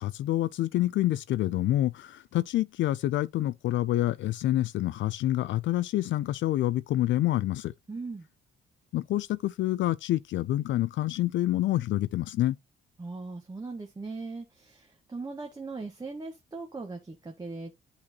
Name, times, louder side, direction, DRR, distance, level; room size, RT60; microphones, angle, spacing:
voice 1, 0.0-7.7 8.9-12.6, left 14 dB, 70° left, 0.4 m, -27 dB
voice 2, 7.9-8.3 13.0-17.8, right 3 dB, 20° right, 1.2 m, -39 dB
8.7 x 4.1 x 2.9 m
cardioid pair, 90°, 20 cm